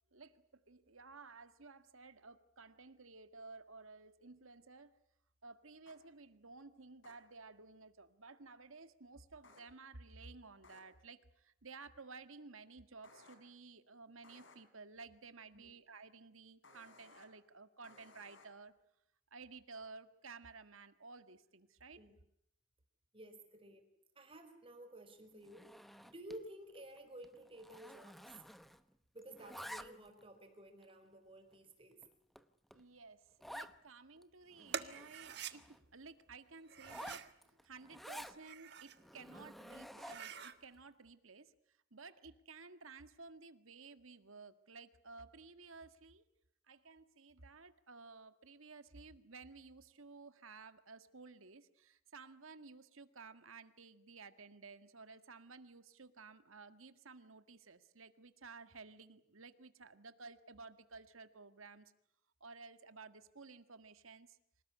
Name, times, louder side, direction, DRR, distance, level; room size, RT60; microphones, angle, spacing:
voice 1, 0.1-4.9 5.4-18.7 19.3-22.0 32.7-35.7 35.9-37.3 37.6-41.5 41.9-46.3 46.7-61.9 62.4-64.4, right 4 dB, 80° right, 10 dB, 1.8 m, -55 dB
sound 1, 5.9-6.0 7.0-7.1 9.4-9.6 10.6-10.8 13.0-13.3 14.2-14.6 16.6-17.3 17.8-18.5, left 3 dB, 65° left, 5.0 m, -61 dB
voice 2, 23.1-23.9 24.1-25.7 26.0-28.4 29.1-32.0, right 1 dB, 25° right, 5 dB, 4.9 m, -53 dB
Zipper (clothing), 25.4-26.5 26.8-27.0 27.2-28.9 29.2-30.2 30.8-30.9 31.5-31.6 32.0-32.1 32.4-32.5 32.7-32.8 33.4-33.8 34.2-34.3 34.5-35.8 36.8-38.4 39.0-40.4, equal, ahead, 0.9 m, -51 dB
sound 2, 34.7-35.5 36.6-37.3 38.2-39.0 39.4-39.5 39.9-40.6, right 7 dB, 55° right, 1.6 m, -46 dB
27.0 x 19.0 x 9.9 m, 0.76 s
head